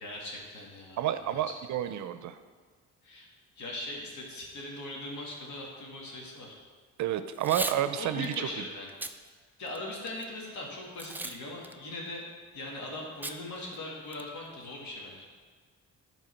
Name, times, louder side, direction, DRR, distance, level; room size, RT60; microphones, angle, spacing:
voice 1, 0.0-1.5 3.0-3.3 3.6-6.6 8.0-8.9 9.6-12.2 12.5-15.3, left 2 dB, 70° left, -2 dB, 2.3 m, -40 dB
voice 2, 1.0-2.4 7.0-8.6, right 11 dB, 70° right, 11 dB, 0.6 m, -30 dB
Packing tape duct tape / Tearing, 7.3-7.8 8.2-8.4 8.9-9.2 9.7-10.2 11.0-11.4 11.6-11.7 13.2-13.4 13.7-13.8 14.1-14.5, right 2 dB, 5° right, 0.4 m, -36 dB
9.7 x 4.5 x 5.8 m, 1.5 s
cardioid pair, 90°, 30 cm